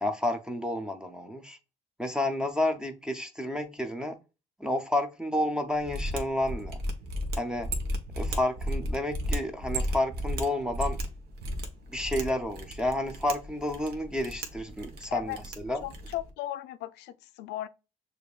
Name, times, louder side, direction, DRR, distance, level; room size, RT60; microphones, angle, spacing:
voice 1, 0.0-1.6 2.0-4.2 4.6-6.8 7.4-7.7 8.2-11.0 11.9-15.4 15.6-15.9, left 1 dB, 5° right, 0.5 m, -30 dB
Mechanisms, 5.8-16.3, equal, 70° right, 1.0 m, -34 dB
voice 2, 15.8-17.7, left 14 dB, 85° left, 0.5 m, -36 dB
6.6 x 2.5 x 2.3 m
cardioid pair, 110°, 17 cm